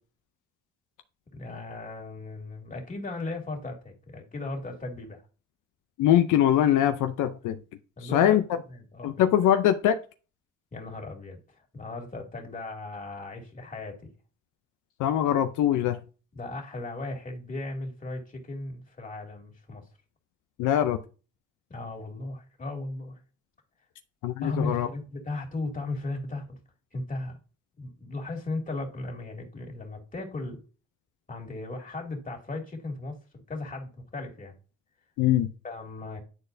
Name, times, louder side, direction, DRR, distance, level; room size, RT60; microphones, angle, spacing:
voice 1, 1.3-5.2 8.0-8.4 8.7-9.1 10.7-11.4 11.7-14.1 16.3-19.8 21.7-23.2 24.4-26.5 26.9-27.4 27.8-30.6 31.3-34.6 35.6-36.2, left 2 dB, 25° left, 2.4 m, -36 dB
voice 2, 6.0-7.6 8.0-8.4 9.0-10.0 15.0-16.0 20.6-21.0 24.2-24.9 35.2-35.5, left 11 dB, 80° left, 0.6 m, -22 dB
9.7 x 4.2 x 2.6 m
cardioid pair, 90°, 30 cm